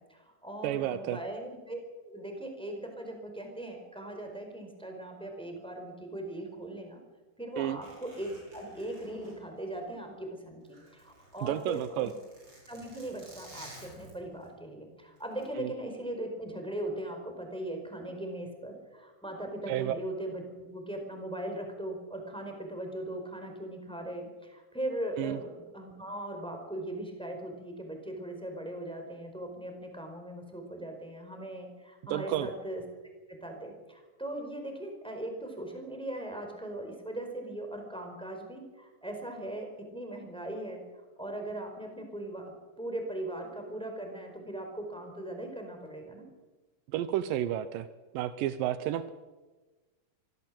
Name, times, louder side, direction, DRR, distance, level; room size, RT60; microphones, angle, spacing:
voice 1, 0.0-1.8 2.0-7.0 7.4-12.1 12.7-32.8 33.3-40.8 41.2-42.4 42.8-46.2, right 1 dB, ahead, 4 dB, 4.1 m, -39 dB
voice 2, 0.6-1.2 7.6-7.8 11.4-12.1 15.6-15.7 19.7-20.0 25.2-25.4 32.1-32.5 46.9-47.9 48.1-49.1, right 12 dB, 80° right, 12 dB, 2.0 m, -31 dB
Zipper (clothing), 7.8-10.2 10.5-14.5 15.2-15.4, right 1 dB, 25° right, 7.8 m, -53 dB
24.5 x 16.5 x 7.7 m, 1.2 s
omnidirectional pair, 4.9 m